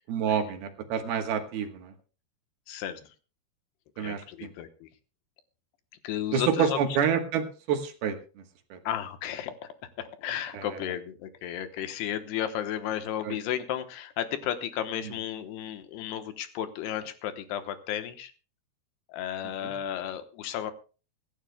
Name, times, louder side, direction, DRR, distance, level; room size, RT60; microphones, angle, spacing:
voice 1, 0.1-1.9 4.0-4.5 6.3-8.4 8.7-8.8 10.5-10.7 13.2-13.4 19.6-19.7, right 7 dB, 70° right, 6 dB, 3.1 m, -28 dB
voice 2, 2.7-3.1 4.0-4.9 6.0-6.8 8.8-9.7 10.0-18.3 19.1-20.7, left 10 dB, 80° left, 9 dB, 3.0 m, -33 dB
25.0 x 12.0 x 2.2 m, 0.35 s
omnidirectional pair, 4.8 m